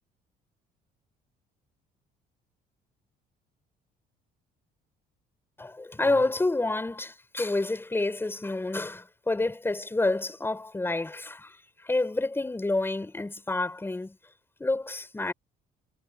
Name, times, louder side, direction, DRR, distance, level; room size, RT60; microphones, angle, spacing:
voice 1, 5.6-14.2 14.6-15.3, left 2 dB, 15° left, 7.7 m, -29 dB
cardioid pair, 110°, 17 cm